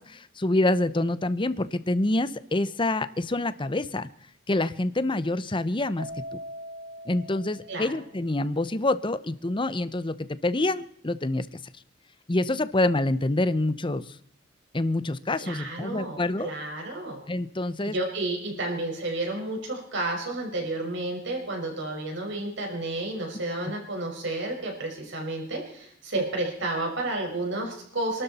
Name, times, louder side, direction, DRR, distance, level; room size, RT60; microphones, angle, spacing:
voice 1, 0.0-4.1 4.5-6.1 7.1-10.2 10.4-11.5 12.3-14.1 14.7-16.5 17.3-18.0, left 2 dB, 25° left, 14 dB, 0.7 m, -26 dB
Keyboard (musical), 6.0-8.5, equal, 70° left, 1.5 m, -42 dB
voice 2, 15.4-17.2 17.8-28.2, right 2 dB, 60° right, 1 dB, 5.5 m, -31 dB
27.0 x 12.5 x 4.2 m, 0.67 s
head